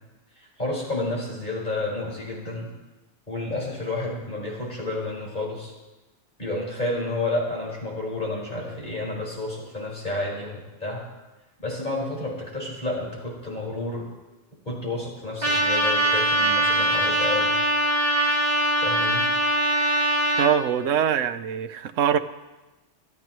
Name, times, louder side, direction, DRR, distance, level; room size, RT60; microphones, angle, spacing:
voice 1, 0.3-2.7 3.3-5.7 6.4-11.0 11.6-14.0 14.7-17.5 18.8-19.3, left 2 dB, 35° left, -4 dB, 5.3 m, -30 dB
Trumpet, 15.4-20.5, right 1 dB, 35° right, 2.3 m, -22 dB
voice 2, 20.4-22.2, right 9 dB, 85° right, 12 dB, 1.1 m, -23 dB
27.5 x 12.0 x 3.1 m, 1.1 s
omnidirectional pair, 1.3 m